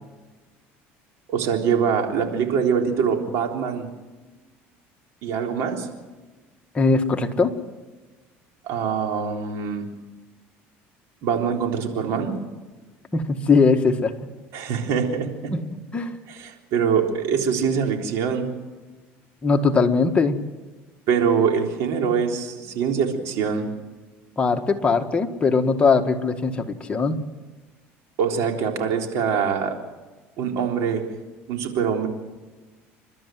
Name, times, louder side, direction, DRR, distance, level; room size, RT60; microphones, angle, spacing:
voice 1, 1.3-3.9 5.2-5.9 8.6-9.9 11.2-12.3 14.5-15.5 16.3-18.5 21.1-23.7 28.2-29.8 30.4-31.1 31.5-32.1, right 6 dB, 70° right, 2 dB, 3.8 m, -24 dB
voice 2, 6.7-7.5 13.1-14.1 15.5-15.6 15.9-16.2 19.4-20.4 24.4-27.2, left 4 dB, 20° left, 4 dB, 1.9 m, -20 dB
30.0 x 12.5 x 7.8 m, 1.2 s
supercardioid pair, 105°, 5 cm